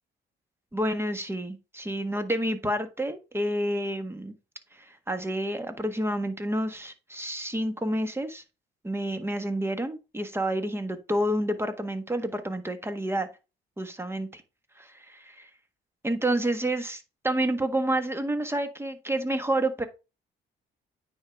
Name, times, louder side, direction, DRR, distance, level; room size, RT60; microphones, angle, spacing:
voice 1, 0.7-4.3 4.7-8.4 8.8-13.3 13.8-14.4 14.8-15.5 16.0-19.8, right 1 dB, 10° right, 1.5 m, -29 dB
9.3 x 5.0 x 3.6 m
cardioid pair, 90°, 20 cm